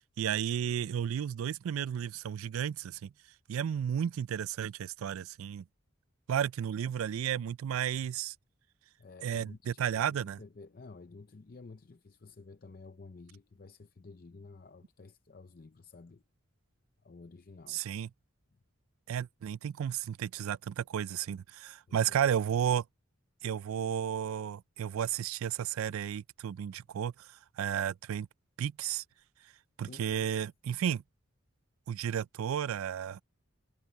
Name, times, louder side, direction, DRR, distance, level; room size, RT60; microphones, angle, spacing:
voice 1, 0.2-3.1 3.5-5.6 6.3-8.3 9.2-10.4 17.7-18.1 19.1-22.8 23.4-27.3 27.6-28.3 28.6-29.0 29.8-31.0 31.9-33.2, right 9 dB, 90° right, 0.3 m, -33 dB
voice 2, 9.0-16.2 17.0-17.8 21.9-22.3 29.8-30.3, left 3 dB, 45° left, 0.5 m, -52 dB
head